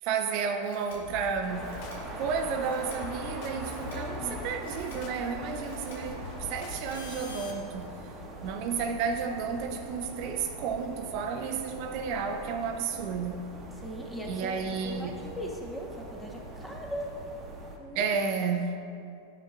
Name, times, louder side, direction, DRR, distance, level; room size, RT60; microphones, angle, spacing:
voice 1, 0.0-1.8 2.2-8.0 8.4-13.4 14.3-15.2 17.9-18.8, right 6 dB, 55° right, 5 dB, 0.4 m, -32 dB
sound 1, 0.6-1.0 1.6-2.0 2.6-3.0 3.6-4.0 4.6-5.0 5.6-6.0 6.6-7.5, left 2 dB, 75° left, 1.5 m, -48 dB
sound 2, 1.0-7.0, left 7 dB, 50° left, 0.5 m, -45 dB
sound 3, 1.5-17.8, right 1 dB, 25° right, 1.1 m, -42 dB
voice 2, 3.9-4.5 13.8-17.1 17.8-18.1, equal, 5° left, 0 dB, 1.1 m, -39 dB
9.8 x 5.9 x 2.4 m, 2.5 s
hypercardioid pair, 100°, 0 cm